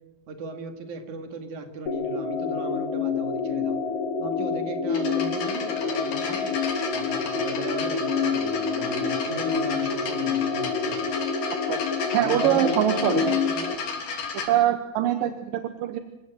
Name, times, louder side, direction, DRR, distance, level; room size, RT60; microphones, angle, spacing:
voice 1, 0.3-3.8 4.2-6.6 6.9-11.1 12.1-13.7, right 3 dB, 55° right, 7 dB, 3.4 m, -37 dB
sound 1, 1.9-13.7, left 5 dB, 55° left, 1.9 m, -27 dB
sound 2, 4.9-14.5, left 5 dB, 80° left, 5.2 m, -34 dB
voice 2, 11.7-13.4 14.5-16.0, right 12 dB, 75° right, 10 dB, 2.5 m, -24 dB
27.0 x 16.5 x 7.7 m, 1.0 s
omnidirectional pair, 4.4 m